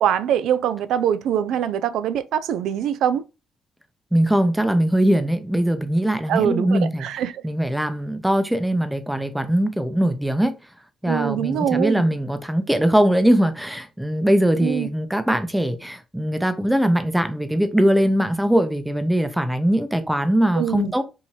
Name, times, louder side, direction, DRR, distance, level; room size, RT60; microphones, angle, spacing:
voice 1, 0.0-3.2 6.3-7.4 11.0-12.0 14.6-14.9 20.6-21.0, right 9 dB, 80° right, 0.3 m, -23 dB
voice 2, 4.1-7.1 7.4-10.5 11.0-21.0, right 1 dB, 5° right, 0.6 m, -21 dB
4.6 x 2.7 x 2.8 m
cardioid pair, 90°, 0 cm